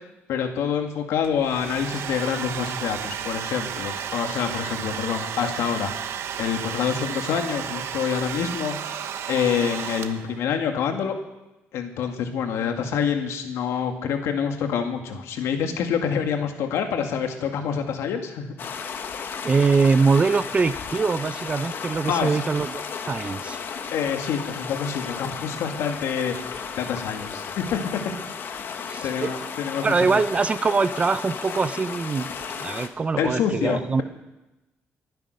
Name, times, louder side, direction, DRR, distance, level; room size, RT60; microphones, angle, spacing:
voice 1, 0.3-6.1 6.4-9.0 9.3-11.1 11.7-18.5 22.1-22.4 23.9-26.3 26.8-28.0 28.5-28.8 29.0-30.2 33.2-34.0, left 7 dB, 80° left, 5 dB, 2.1 m, -27 dB
Domestic sounds home sounds, 1.2-10.4, right 9 dB, 70° right, 1.0 m, -33 dB
sound 1, 18.6-32.9, left 6 dB, 50° left, 1.4 m, -34 dB
voice 2, 19.4-22.8 23.1-23.6 28.9-29.3 29.8-32.3 32.5-34.0, right 4 dB, 25° right, 14 dB, 0.6 m, -23 dB
23.0 x 9.3 x 6.5 m, 0.99 s
cardioid pair, 130°, 5 cm